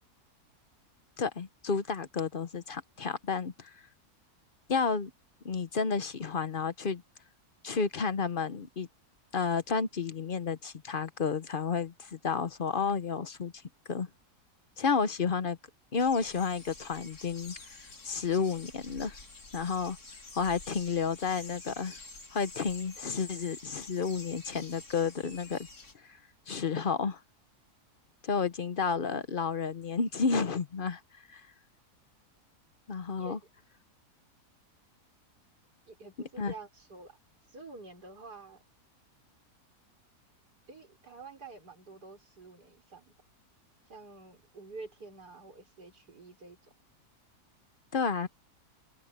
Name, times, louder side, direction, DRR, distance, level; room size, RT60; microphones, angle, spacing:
voice 1, 1.2-3.7 4.7-5.1 5.4-7.0 7.6-8.9 9.3-13.5 13.9-14.1 14.8-15.6 15.9-17.5 18.0-19.1 19.5-20.0 20.3-22.0 22.3-25.7 26.5-27.2 28.2-31.0 31.3-31.4 32.9-33.4 36.4-36.5 47.9-48.3, left 5 dB, 45° left, 0.8 m, -31 dB
sound 1, 16.0-25.9, left 3 dB, 70° left, 4.1 m, -49 dB
voice 2, 35.9-37.2 37.5-38.6 40.7-43.1 43.9-46.7, right 3 dB, 85° right, 5.6 m, -48 dB
open air
omnidirectional pair, 1.7 m